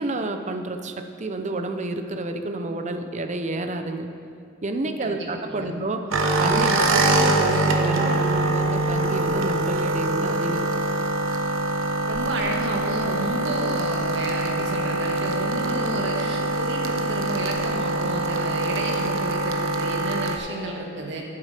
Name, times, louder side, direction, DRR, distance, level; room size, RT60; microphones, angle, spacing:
voice 1, 0.0-4.1 4.6-6.1 6.4-10.8, right 2 dB, 35° right, 7 dB, 0.7 m, -29 dB
voice 2, 5.0-5.7 6.6-6.9 12.1-21.2, right 1 dB, 65° right, 0 dB, 1.7 m, -31 dB
sound 1, 6.1-20.4, right 2 dB, 90° right, 0.9 m, -24 dB
12.0 x 8.5 x 5.1 m, 2.4 s
head